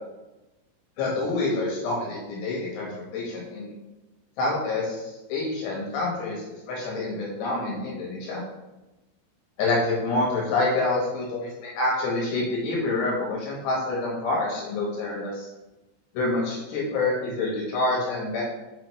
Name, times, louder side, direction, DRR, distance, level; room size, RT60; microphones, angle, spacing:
voice 1, 1.0-3.7 4.4-5.0 5.3-8.4 9.6-15.5 16.1-18.4, left 2 dB, 70° left, -3 dB, 2.9 m, -27 dB
6.6 x 5.7 x 3.0 m, 1.0 s
omnidirectional pair, 5.7 m